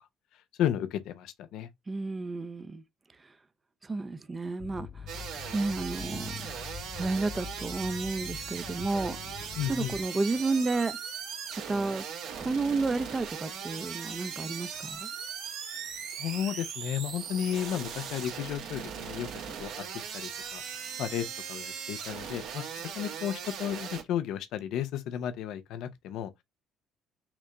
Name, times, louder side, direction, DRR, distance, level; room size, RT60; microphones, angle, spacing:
voice 1, 0.6-1.7 9.6-9.9 16.2-19.9 20.1-20.6 21.0-26.4, left 10 dB, 75° left, 0.8 m, -33 dB
voice 2, 1.9-2.8 3.2-3.3 3.8-5.1 5.5-6.5 7.0-11.0 11.7-12.0 12.4-15.1, right 3 dB, 25° right, 0.7 m, -31 dB
sound 1, 4.6-10.1, left 6 dB, 35° left, 0.5 m, -44 dB
sound 2, 5.1-24.0, right 7 dB, 70° right, 1.6 m, -39 dB
6.0 x 2.2 x 3.8 m
cardioid pair, 105°, 0 cm